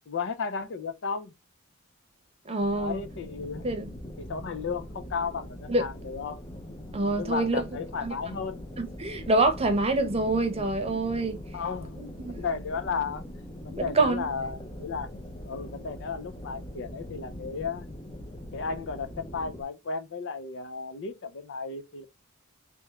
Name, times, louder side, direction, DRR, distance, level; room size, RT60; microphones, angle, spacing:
voice 1, 0.1-1.3 2.7-3.7 4.2-6.4 7.1-8.7 11.5-12.0 12.3-13.2 13.6-15.1 15.5-17.9 18.5-22.1, left 5 dB, 60° left, 0.5 m, -34 dB
voice 2, 2.5-3.0 3.6-3.9 5.7-5.9 6.9-7.6 8.0-8.1 8.8-11.4 12.0-12.4 13.8-14.2, right 2 dB, 30° right, 0.8 m, -26 dB
sound 1, 2.6-19.6, equal, 20° left, 0.6 m, -42 dB
3.5 x 2.9 x 3.1 m
head